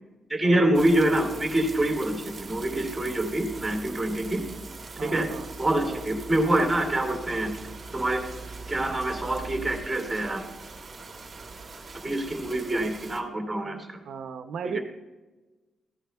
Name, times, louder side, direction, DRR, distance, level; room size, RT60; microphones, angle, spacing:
voice 1, 0.3-4.4 5.0-5.3 5.6-7.5 7.9-8.2 8.7-10.4 12.0-13.9 14.6-14.8, right 1 dB, 5° right, 2 dB, 2.5 m, -25 dB
sound 1, 0.7-13.2, right 4 dB, 25° right, 1.2 m, -41 dB
voice 2, 5.0-5.5 5.8-6.0 14.0-14.8, right 7 dB, 75° right, 8 dB, 0.6 m, -36 dB
14.5 x 10.0 x 2.3 m, 1.2 s
cardioid pair, 130°, 0 cm